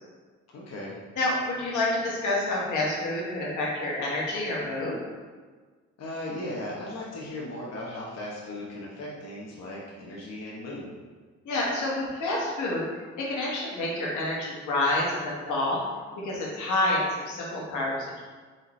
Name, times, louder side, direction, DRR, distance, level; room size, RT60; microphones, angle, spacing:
voice 1, 0.5-0.9 6.0-10.9, left 1 dB, 60° left, -4 dB, 0.9 m, -37 dB
voice 2, 1.2-5.0 11.4-12.9 13.2-15.8 16.2-18.2, left 2 dB, 75° left, -4 dB, 1.4 m, -28 dB
4.2 x 3.8 x 3.1 m, 1.5 s
cardioid pair, 90°, 30 cm